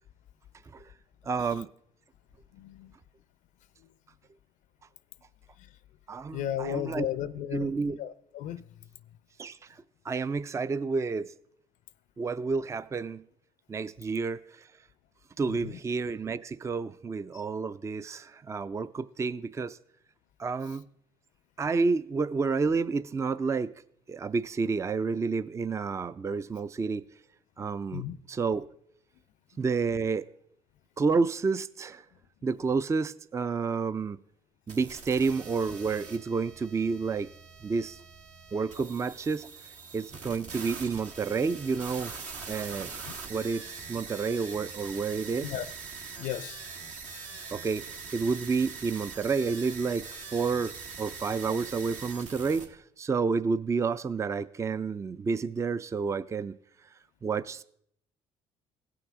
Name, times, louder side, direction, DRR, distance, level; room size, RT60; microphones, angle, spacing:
voice 1, 1.2-1.7 6.1-7.1 7.5-8.0 9.4-11.3 12.2-13.2 13.7-14.7 15.4-19.8 20.4-20.9 21.6-23.7 24.1-27.0 27.6-28.0 28.3-28.7 29.6-30.3 31.0-32.1 32.4-34.2 34.7-37.3 37.6-38.0 38.5-39.5 39.9-42.1 42.5-42.9 43.3-45.5 47.5-56.6 57.2-57.6, right 4 dB, 20° right, 0.4 m, -30 dB
voice 2, 2.5-3.0 5.6-5.7 6.3-8.7 15.5-15.8 27.9-28.2 45.4-45.7 46.2-46.6, left 11 dB, 70° left, 0.5 m, -35 dB
sound 1, 34.7-52.7, right 5 dB, 65° right, 1.5 m, -43 dB
16.5 x 5.8 x 3.6 m
supercardioid pair, 70°, 14 cm